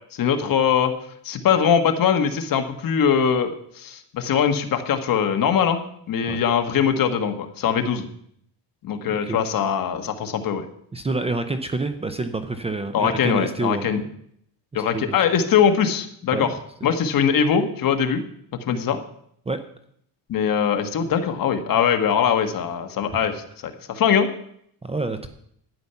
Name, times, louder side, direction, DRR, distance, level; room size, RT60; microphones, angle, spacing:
voice 1, 0.1-0.9 1.2-8.1 8.8-10.6 12.9-14.0 14.7-16.5 16.8-18.2 18.6-19.0 20.3-24.3, left 7 dB, 50° left, 7 dB, 1.5 m, -22 dB
voice 2, 9.0-9.4 10.9-13.9 14.7-15.2 16.3-16.5 16.8-17.0 19.5-19.6 23.1-23.2 24.8-25.3, right 3 dB, 15° right, 9 dB, 0.7 m, -28 dB
12.0 x 9.5 x 5.7 m, 0.69 s
cardioid pair, 145°, 42 cm